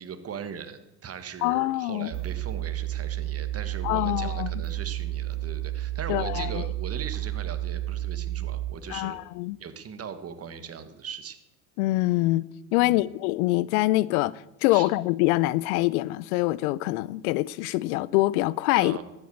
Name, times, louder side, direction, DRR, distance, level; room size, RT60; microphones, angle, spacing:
voice 1, 0.0-9.2 9.6-11.4 12.8-13.0 14.7-14.9 18.7-19.0, right 7 dB, 30° right, 1.5 m, -39 dB
voice 2, 1.4-2.1 3.8-4.5 6.1-6.6 8.9-9.6 11.8-12.5 12.7-14.3 14.6-19.0, left 19 dB, 75° left, 0.7 m, -24 dB
sound 1, 2.1-8.7, right 14 dB, 55° right, 6.0 m, -31 dB
12.5 x 8.5 x 7.9 m
supercardioid pair, 100°, 45 cm